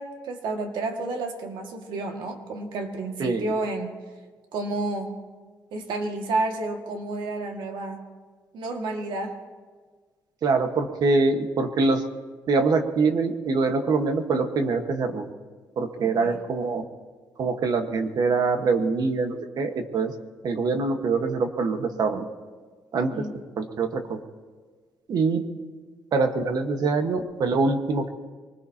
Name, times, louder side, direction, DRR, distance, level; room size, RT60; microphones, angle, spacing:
voice 1, 0.0-4.0 4.5-5.2 5.7-8.1 8.5-9.4 16.0-16.4 23.1-23.3, right 2 dB, 85° right, 3 dB, 1.9 m, -30 dB
voice 2, 10.4-12.0 12.5-15.3 15.8-16.8 17.4-20.1 20.4-22.2 22.9-23.3 23.6-24.2 25.1-25.4 26.1-28.1, right 4 dB, 55° right, 6 dB, 1.3 m, -24 dB
24.0 x 20.0 x 2.8 m, 1.5 s
cardioid pair, 125°, 8 cm